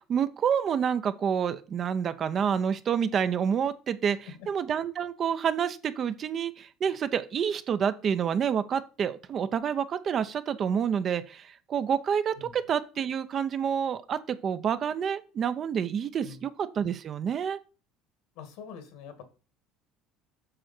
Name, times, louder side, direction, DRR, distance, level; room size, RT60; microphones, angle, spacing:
voice 1, 0.0-17.6, right 7 dB, 35° right, 12 dB, 0.7 m, -28 dB
voice 2, 18.4-19.2, left 6 dB, 75° left, 9 dB, 2.3 m, -44 dB
7.6 x 6.4 x 4.5 m, 0.34 s
cardioid pair, 140°, 0 cm